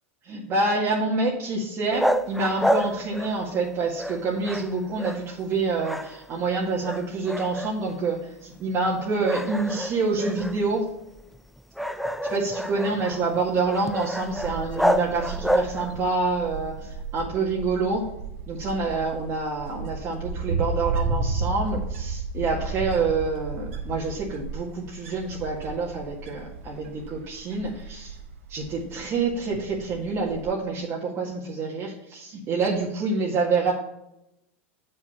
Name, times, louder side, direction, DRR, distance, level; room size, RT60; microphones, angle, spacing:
voice 1, 0.2-10.9 12.3-18.1 18.5-28.2 28.5-33.7, right 3 dB, 40° right, -4 dB, 1.8 m, -27 dB
Field-Recording.PB.Dogs, 1.9-3.7 4.0-5.5 5.8-6.5 6.8-8.0 8.5-8.6 9.2-16.1, equal, ahead, 0.5 m, -29 dB
Wind, 14.2-30.5, right 3 dB, 80° right, 1.6 m, -33 dB
8.1 x 5.8 x 5.5 m, 0.85 s
hypercardioid pair, 110°, 7 cm